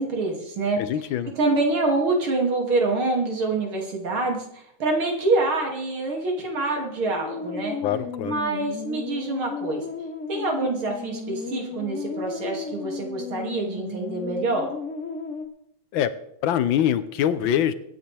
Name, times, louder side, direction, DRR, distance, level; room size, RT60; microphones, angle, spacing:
voice 1, 0.0-0.8 1.4-7.8 8.2-9.8 10.3-14.7, right 2 dB, 80° right, 1 dB, 3.4 m, -26 dB
voice 2, 0.8-1.3 7.8-8.4 15.9-16.1 16.4-17.7, left 10 dB, 70° left, 13 dB, 1.5 m, -23 dB
sound 1, 6.9-15.5, left 4 dB, 40° left, 1.5 m, -34 dB
22.5 x 9.9 x 3.4 m, 0.76 s
omnidirectional pair, 2.3 m